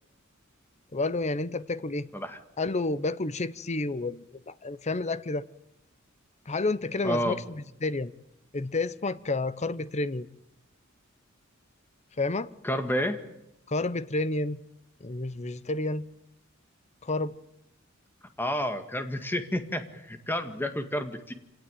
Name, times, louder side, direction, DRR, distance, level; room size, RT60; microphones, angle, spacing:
voice 1, 0.9-2.1 2.6-5.4 6.5-8.1 8.5-10.3 12.2-12.5 13.7-14.6 15.0-16.1 17.0-17.3, left 2 dB, 35° left, 0.8 m, -30 dB
voice 2, 7.0-7.4 12.6-13.2 18.4-21.3, equal, 10° left, 1.9 m, -30 dB
25.5 x 18.5 x 9.1 m
head